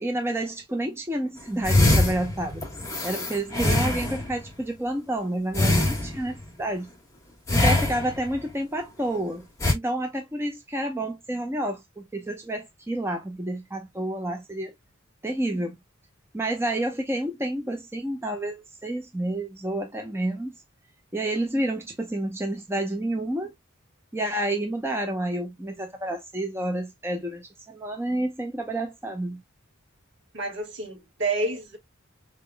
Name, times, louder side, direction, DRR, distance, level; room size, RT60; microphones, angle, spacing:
voice 1, 0.0-2.7 3.0-6.9 7.5-9.4 9.7-14.7 15.2-15.7 16.3-20.5 21.1-23.5 24.1-29.4, right 1 dB, 10° right, 0.8 m, -29 dB
sound 1, 1.6-4.4 5.5-6.5 7.5-8.4 9.6-9.7, left 2 dB, 15° left, 1.6 m, -23 dB
voice 2, 30.3-31.8, right 2 dB, 60° right, 2.4 m, -29 dB
4.4 x 3.6 x 2.2 m
head